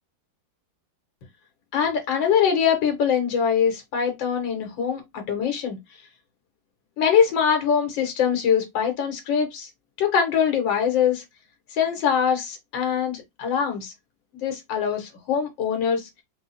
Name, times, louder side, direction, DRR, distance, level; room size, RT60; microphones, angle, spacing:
voice 1, 1.7-5.8 7.0-9.7 10.0-11.2 11.7-13.9 14.3-16.1, left 7 dB, 80° left, 1.8 m, -23 dB
4.4 x 2.1 x 4.0 m
omnidirectional pair, 2.0 m